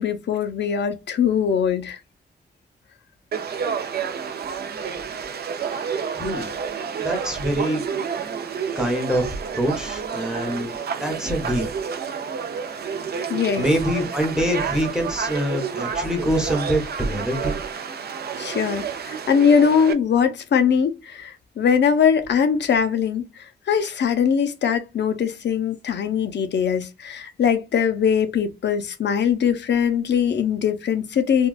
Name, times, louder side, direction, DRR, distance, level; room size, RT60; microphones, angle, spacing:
voice 1, 0.0-2.0 13.3-13.6 18.4-31.5, left 7 dB, 80° left, 0.5 m, -21 dB
Conversation / Crowd, 3.3-19.9, right 6 dB, 65° right, 0.5 m, -30 dB
voice 2, 6.2-6.5 7.0-8.0 8.7-11.7 13.6-17.6, equal, 5° right, 0.8 m, -25 dB
3.6 x 2.2 x 2.3 m
wide cardioid pair, 175°, 18 cm